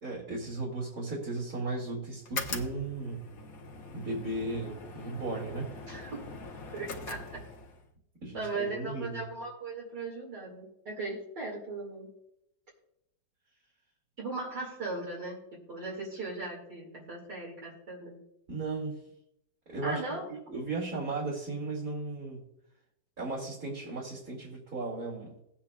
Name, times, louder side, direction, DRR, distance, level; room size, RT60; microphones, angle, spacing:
voice 1, 0.0-3.2 3.9-5.7 8.2-9.2 18.5-18.9 19.7-20.0 20.5-22.4 23.2-25.3, right 2 dB, 50° right, -6 dB, 2.8 m, -35 dB
sound 1, 2.2-7.9, left 3 dB, 55° left, 1.3 m, -42 dB
voice 2, 5.9-6.2 6.7-7.4 8.3-12.1 14.2-18.2 19.8-20.3, right 3 dB, 70° right, -4 dB, 3.0 m, -38 dB
19.5 x 8.5 x 2.4 m, 0.81 s
omnidirectional pair, 1.9 m